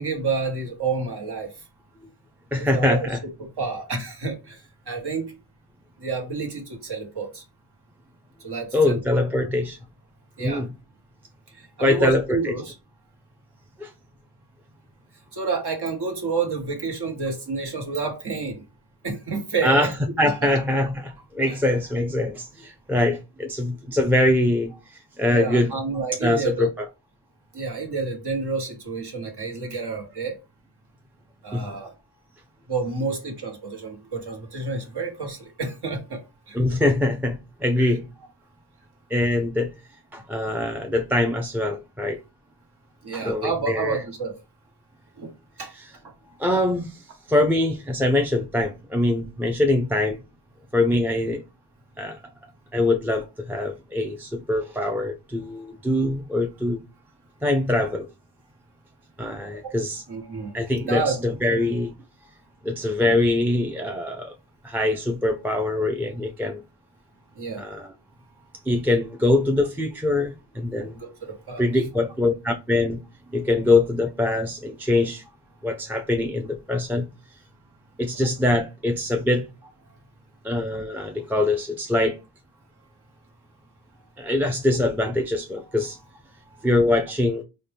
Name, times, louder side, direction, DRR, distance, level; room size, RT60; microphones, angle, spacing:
voice 1, 0.0-1.5 2.6-3.1 3.4-4.6 4.9-5.3 6.0-7.4 8.4-9.0 10.4-10.6 11.8-12.7 15.3-18.6 19.0-19.9 21.5-21.6 25.3-26.7 27.5-30.3 31.4-31.9 32.7-36.2 36.5-36.6 37.8-37.9 43.0-44.3 45.2-45.3 45.6-45.7 60.1-60.5 60.9-61.2 67.4-67.6 71.0-71.1 71.5-71.7, right 4 dB, 70° right, 1.1 m, -29 dB
voice 2, 2.5-3.2 8.7-9.8 10.4-10.7 11.8-12.5 13.8-13.9 19.6-19.9 20.2-25.7 26.2-26.9 31.5-31.8 36.5-38.1 39.1-39.7 40.1-42.2 43.1-44.0 45.7-45.9 46.4-47.0 47.3-50.2 50.7-51.4 52.0-52.2 52.7-56.8 57.4-58.1 59.2-60.0 60.5-61.9 62.6-64.3 64.6-66.6 67.6-67.9 68.7-71.0 71.6-73.0 73.3-75.2 75.6-77.1 78.0-79.5 80.4-82.2 84.2-86.0 86.6-87.4, left 2 dB, 5° right, 0.4 m, -23 dB
4.1 x 2.2 x 3.3 m
wide cardioid pair, 55°, 41 cm